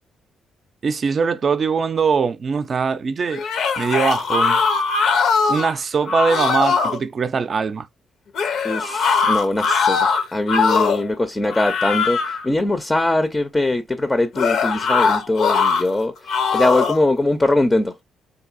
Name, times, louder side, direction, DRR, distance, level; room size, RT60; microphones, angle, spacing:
voice 1, 0.8-3.4 3.8-4.6 5.5-7.9, right 5 dB, 45° right, 0.4 m, -21 dB
sound 1, 3.3-5.7 6.1-7.0 8.3-11.1 11.5-12.5 14.3-15.8 16.3-17.0, left 5 dB, 70° left, 0.6 m, -20 dB
voice 2, 8.6-17.9, left 2 dB, 15° left, 0.5 m, -21 dB
3.8 x 2.6 x 2.4 m
cardioid pair, 90°, 0 cm